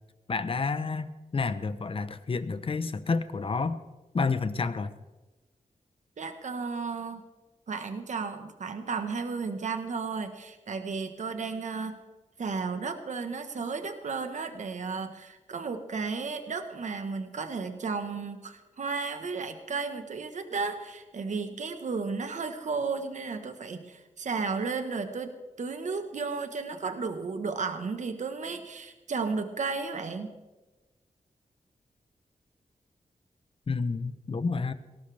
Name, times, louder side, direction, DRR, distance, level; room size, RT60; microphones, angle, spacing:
voice 1, 0.3-3.8 4.1-4.9 33.7-34.7, left 4 dB, 45° left, 12 dB, 1.0 m, -29 dB
voice 2, 6.2-7.2 7.7-11.9 12.4-25.3 25.6-30.3, right 4 dB, 65° right, 7 dB, 1.4 m, -33 dB
19.0 x 17.5 x 3.5 m, 1.1 s
wide cardioid pair, 105°, 13 cm